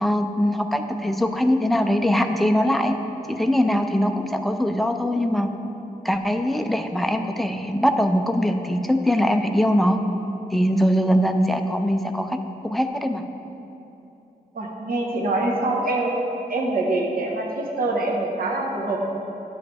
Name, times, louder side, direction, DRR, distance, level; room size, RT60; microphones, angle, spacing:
voice 1, 0.0-3.0 3.3-5.5 6.0-10.0 10.5-12.4 12.6-13.2, equal, ahead, 5 dB, 0.4 m, -22 dB
voice 2, 14.5-16.2 16.5-19.0, right 2 dB, 70° right, -1 dB, 1.2 m, -24 dB
10.5 x 7.1 x 3.4 m, 2.9 s
wide cardioid pair, 150°, 15 cm